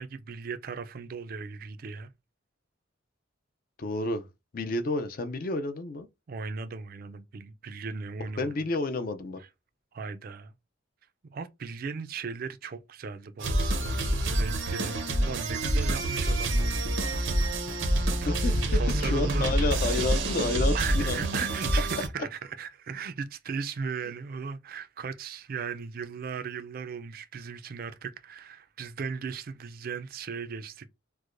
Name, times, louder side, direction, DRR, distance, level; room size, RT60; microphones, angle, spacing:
voice 1, 0.0-2.1 6.3-8.5 9.9-10.5 11.2-17.1 18.0-19.9 20.7-30.9, right 5 dB, 50° right, 0.4 m, -37 dB
voice 2, 3.8-4.3 4.5-6.1 8.4-9.4 18.3-21.3, left 2 dB, 50° left, 0.5 m, -30 dB
sound 1, 13.4-22.1, right 1 dB, 85° right, 0.8 m, -27 dB
4.6 x 2.1 x 2.5 m
head